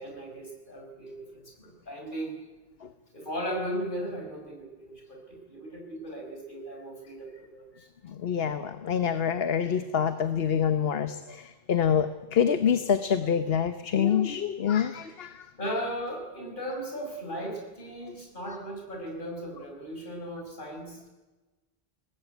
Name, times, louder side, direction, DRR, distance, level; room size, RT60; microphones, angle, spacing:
voice 1, 0.0-2.4 3.1-7.9 15.6-21.1, equal, 55° left, 2 dB, 5.7 m, -37 dB
voice 2, 8.0-15.7 18.0-18.1 18.4-18.6, left 8 dB, 70° left, 10 dB, 1.2 m, -26 dB
23.0 x 19.5 x 9.3 m, 1.2 s
omnidirectional pair, 1.0 m